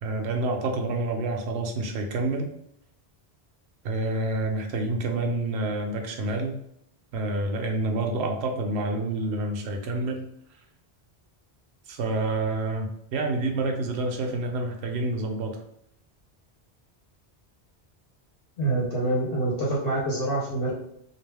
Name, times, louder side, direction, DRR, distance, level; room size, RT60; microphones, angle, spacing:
voice 1, 0.0-2.5 3.8-6.6 7.1-10.3 11.9-15.6, right 2 dB, 75° right, 3 dB, 0.8 m, -28 dB
voice 2, 18.6-20.7, right 2 dB, 65° left, -5 dB, 1.0 m, -26 dB
2.4 x 2.3 x 3.3 m, 0.74 s
omnidirectional pair, 1.1 m